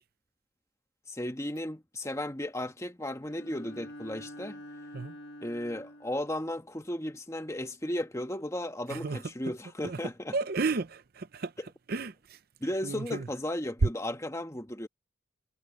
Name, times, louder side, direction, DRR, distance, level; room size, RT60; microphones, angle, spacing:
voice 1, 1.1-4.6 5.4-10.4 11.6-11.7 12.6-14.9, left 1 dB, 15° left, 1.3 m, -35 dB
Bowed string instrument, 3.2-6.4, left 1 dB, 55° left, 2.0 m, -46 dB
voice 2, 8.9-9.2 9.8-10.0 10.3-11.5 11.9-12.4 12.8-13.3, right 4 dB, 50° right, 0.6 m, -33 dB
head